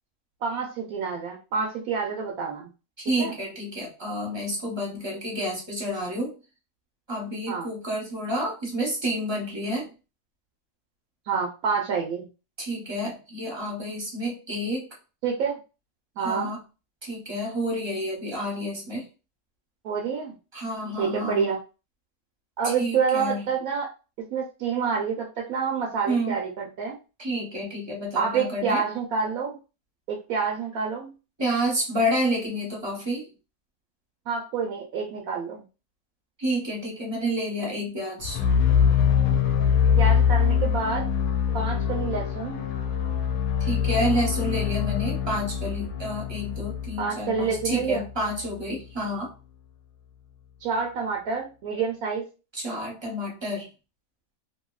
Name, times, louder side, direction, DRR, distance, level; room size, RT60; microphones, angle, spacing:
voice 1, 0.4-2.7 3.2-3.3 7.5-7.7 11.3-12.3 15.2-15.6 16.2-16.5 19.8-20.3 21.0-21.6 22.6-23.9 24.3-27.0 28.2-29.6 30.1-31.1 34.3-35.6 40.0-41.1 41.5-42.6 47.0-48.0 50.6-52.3, right 6 dB, 75° right, 0 dB, 1.0 m, -28 dB
voice 2, 3.0-6.3 7.1-9.9 12.6-14.9 16.2-16.6 17.0-19.1 20.5-21.5 22.6-23.4 26.1-26.3 27.2-28.8 31.4-33.3 36.4-38.4 43.6-49.3 52.5-53.7, equal, 25° right, -2 dB, 0.7 m, -29 dB
sound 1, 38.2-48.2, left 8 dB, 75° left, 1.0 m, -24 dB
2.8 x 2.6 x 2.3 m, 0.32 s
omnidirectional pair, 1.6 m